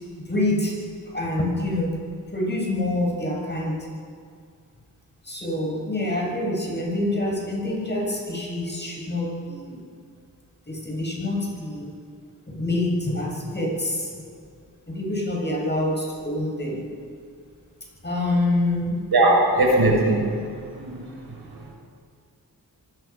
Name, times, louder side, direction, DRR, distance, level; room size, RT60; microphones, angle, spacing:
voice 1, 0.2-0.8 1.0-2.1 2.3-3.8 5.2-9.8 10.7-11.9 12.5-14.1 14.9-16.9 18.0-19.1, left 1 dB, 30° left, -2 dB, 6.9 m, -26 dB
voice 2, 19.1-20.3 20.8-21.0, right 2 dB, 80° right, -2 dB, 6.7 m, -19 dB
25.0 x 18.0 x 6.0 m, 2.2 s
wide cardioid pair, 70°, 37 cm